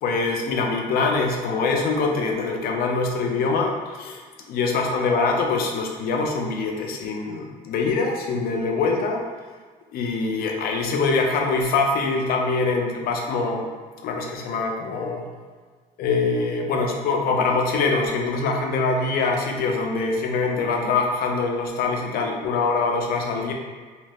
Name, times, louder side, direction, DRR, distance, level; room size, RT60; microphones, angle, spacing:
voice 1, 0.0-9.3 9.9-13.7 14.0-15.2 16.0-23.5, left 4 dB, 65° left, 2 dB, 0.5 m, -24 dB
2.4 x 2.0 x 3.3 m, 1.5 s
cardioid pair, 110°, 17 cm